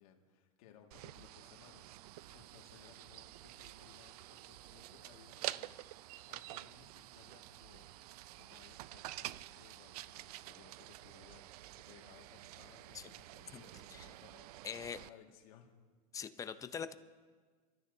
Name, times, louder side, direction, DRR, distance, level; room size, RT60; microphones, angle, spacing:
voice 1, 0.0-1.9 2.1-15.7, left 8 dB, 70° left, 2 dB, 1.9 m, -62 dB
sound 1, 0.9-15.1, right 15 dB, 80° right, 0.4 m, -49 dB
voice 2, 14.6-15.0 16.1-16.9, left 7 dB, 15° left, 11 dB, 0.5 m, -43 dB
28.0 x 13.0 x 2.7 m, 1.5 s
supercardioid pair, 145°, 19 cm